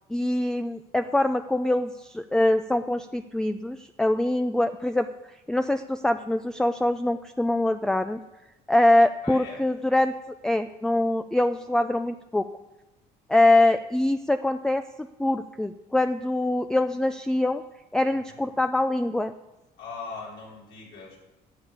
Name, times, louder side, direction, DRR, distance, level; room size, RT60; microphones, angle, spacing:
voice 1, 0.1-5.1 5.5-8.2 8.7-10.1 10.4-12.5 13.3-17.6 17.9-19.3, left 1 dB, 5° left, 8 dB, 0.4 m, -24 dB
voice 2, 9.2-9.6 18.1-18.4 19.8-21.2, left 4 dB, 85° left, -4 dB, 5.0 m, -40 dB
10.5 x 7.2 x 8.6 m, 1.0 s
cardioid pair, 110°, 17 cm